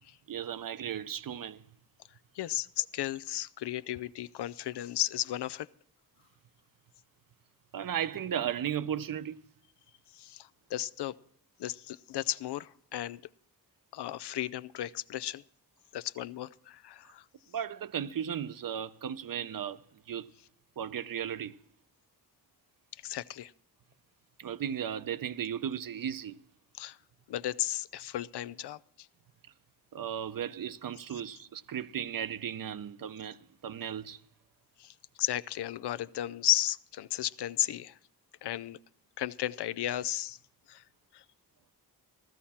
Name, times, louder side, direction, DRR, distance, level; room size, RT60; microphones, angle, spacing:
voice 1, 0.3-1.6 7.7-9.4 17.5-19.8 20.1-20.3 20.8-21.6 24.4-26.4 29.9-34.2, right 9 dB, 60° right, 0.7 m, -35 dB
voice 2, 2.3-5.7 10.1-11.2 11.6-13.2 13.9-15.4 15.9-17.2 23.0-23.5 26.7-27.0 27.3-29.1 34.8-38.0 38.4-38.8 39.2-40.4 40.7-40.8 41.1-41.2, left 13 dB, 90° left, 0.5 m, -34 dB
15.5 x 13.5 x 4.3 m
cardioid pair, 80°, 39 cm